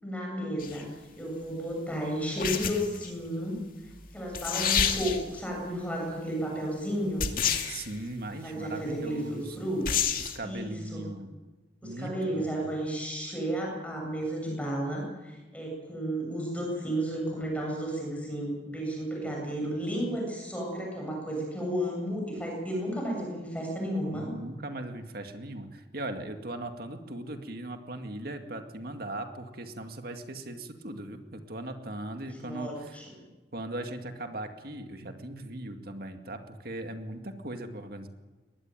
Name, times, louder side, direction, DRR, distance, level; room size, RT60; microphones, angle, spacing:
voice 1, 0.0-0.9 1.2-3.6 3.8-7.3 8.4-9.9 10.4-11.0 11.8-24.3 32.4-33.1, equal, 5° left, 0 dB, 7.3 m, -33 dB
sound 1, 0.6-0.8 2.4-3.1 4.0-4.1 4.3-5.4 7.2-7.9 9.9-10.4, left 7 dB, 50° left, 2.4 m, -28 dB
voice 2, 7.7-9.7 10.2-11.3 11.8-12.6 24.1-33.0 33.5-38.1, right 1 dB, 55° right, 6 dB, 2.2 m, -39 dB
22.0 x 20.0 x 9.1 m, 1.2 s
head